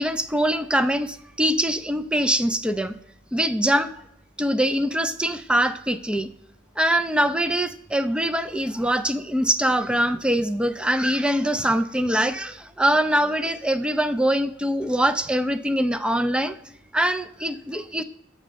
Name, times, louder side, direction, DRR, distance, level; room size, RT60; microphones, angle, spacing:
voice 1, 0.0-3.0 3.3-3.9 4.4-6.3 6.8-16.6 16.9-18.0, right 1 dB, 5° right, 10 dB, 0.3 m, -23 dB
7.7 x 3.2 x 6.2 m, 0.78 s
head